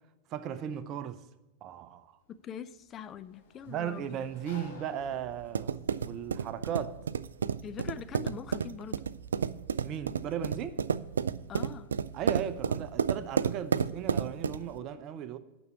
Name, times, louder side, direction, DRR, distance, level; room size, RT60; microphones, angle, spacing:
voice 1, 0.3-1.2 1.6-2.1 3.7-7.0 9.8-10.8 12.1-15.4, right 9 dB, 35° right, 0.7 m, -36 dB
Sliding door, 2.2-14.8, left 2 dB, 55° left, 2.8 m, -58 dB
voice 2, 2.3-4.2 7.6-9.0 11.5-11.9, left 8 dB, 30° left, 0.5 m, -43 dB
sound 1, 5.0-14.8, right 7 dB, 70° right, 0.3 m, -32 dB
9.4 x 6.2 x 7.1 m
figure-of-eight pair, 90°, 0 cm